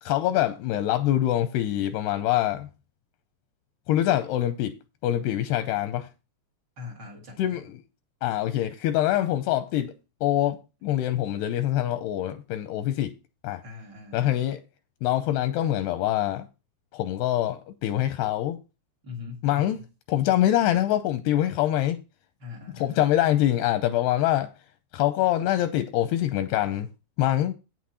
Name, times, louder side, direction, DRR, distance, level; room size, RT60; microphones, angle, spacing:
voice 1, 0.0-2.7 3.9-4.8 5.0-6.1 7.4-7.8 8.2-10.0 10.2-13.1 13.4-13.6 14.1-14.6 15.0-16.5 16.9-18.6 19.4-19.8 20.1-22.0 22.7-24.5 24.9-26.9 27.2-27.5, left 13 dB, 85° left, 2.4 m, -24 dB
voice 2, 6.8-7.6 13.6-14.3 19.0-19.8 22.4-23.0, left 5 dB, 60° right, 1.1 m, -41 dB
9.0 x 7.8 x 4.2 m
omnidirectional pair, 5.3 m